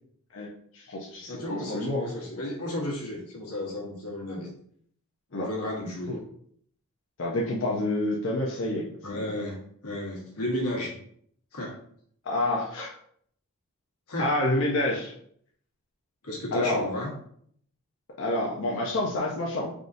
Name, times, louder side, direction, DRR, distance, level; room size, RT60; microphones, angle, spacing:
voice 1, 0.7-2.1 5.3-5.5 6.1-6.2 7.2-9.2 12.2-12.9 14.2-15.1 16.5-16.9 18.2-19.7, left 1 dB, 55° left, -2 dB, 0.5 m, -28 dB
voice 2, 1.3-4.5 5.3-6.2 9.0-9.6 9.8-11.0 11.5-11.7 14.1-14.3 16.2-17.1, left 1 dB, 85° left, -2 dB, 1.2 m, -33 dB
3.9 x 3.5 x 2.5 m, 0.65 s
head